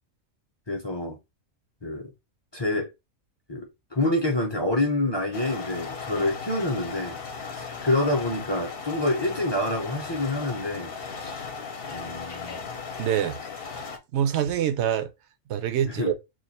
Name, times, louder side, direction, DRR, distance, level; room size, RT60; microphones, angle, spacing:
voice 1, 0.7-1.2 1.8-2.1 2.5-2.9 3.5-7.2 7.5-11.4 11.9-12.6 15.8-16.1, left 1 dB, 25° left, 0.6 m, -27 dB
sound 1, 5.3-14.0, left 5 dB, 50° left, 0.9 m, -37 dB
voice 2, 13.0-13.4 14.1-15.1 15.5-16.1, right 9 dB, 65° right, 0.8 m, -25 dB
3.1 x 2.5 x 4.0 m
omnidirectional pair, 1.4 m